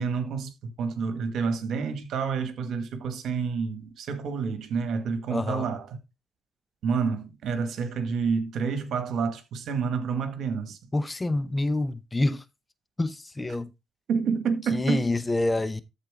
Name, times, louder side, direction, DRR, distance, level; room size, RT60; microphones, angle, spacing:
voice 1, 0.0-5.9 6.8-10.8 14.1-15.0, right 5 dB, 70° right, 1.8 m, -29 dB
voice 2, 5.3-5.7 10.9-12.4 13.0-13.7 14.7-15.8, left 2 dB, 20° left, 0.8 m, -27 dB
13.0 x 4.4 x 3.7 m
supercardioid pair, 65°, 0 cm